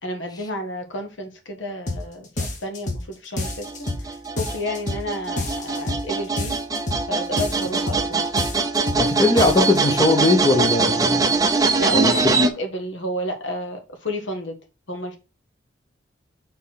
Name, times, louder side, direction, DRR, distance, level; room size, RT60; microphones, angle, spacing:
voice 1, 0.0-6.6 7.1-8.2 11.8-14.6 14.9-15.2, equal, 80° left, 1.5 m, -31 dB
sound 1, 1.9-2.1 2.4-3.1 3.4-4.1 4.4-5.1 5.4-6.1 6.4-7.1 7.4-8.1 8.4-9.1 9.4-9.8, left 2 dB, 40° left, 1.4 m, -28 dB
sound 2, 3.4-12.5, right 4 dB, 20° right, 0.6 m, -23 dB
voice 2, 9.0-11.2 11.9-12.4, left 2 dB, 20° left, 1.0 m, -19 dB
4.5 x 4.2 x 5.8 m
head